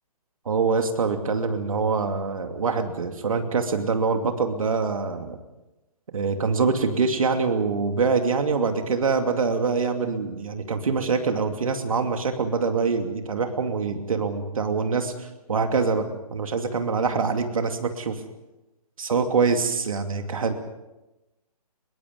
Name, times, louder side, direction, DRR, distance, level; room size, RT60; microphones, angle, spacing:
voice 1, 0.4-5.4 6.1-18.2 19.0-20.5, right 4 dB, 60° right, 6 dB, 2.6 m, -24 dB
24.0 x 22.0 x 5.3 m, 0.98 s
figure-of-eight pair, 135°, 20 cm